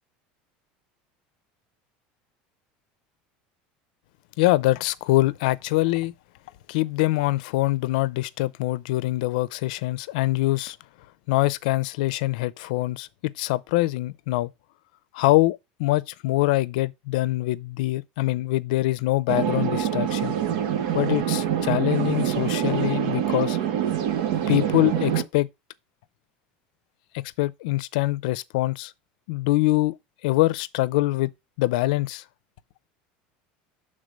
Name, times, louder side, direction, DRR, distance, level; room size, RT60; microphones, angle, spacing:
voice 1, 4.4-6.1 6.7-10.8 11.3-14.5 15.1-20.4 20.9-23.6 24.5-25.5 27.1-28.9 29.3-29.9 30.2-31.3 31.6-32.2, left 18 dB, 80° left, 0.5 m, -24 dB
sound 1, 19.3-25.2, right 10 dB, 75° right, 1.2 m, -25 dB
6.6 x 3.6 x 6.2 m
cardioid pair, 170°, 4 cm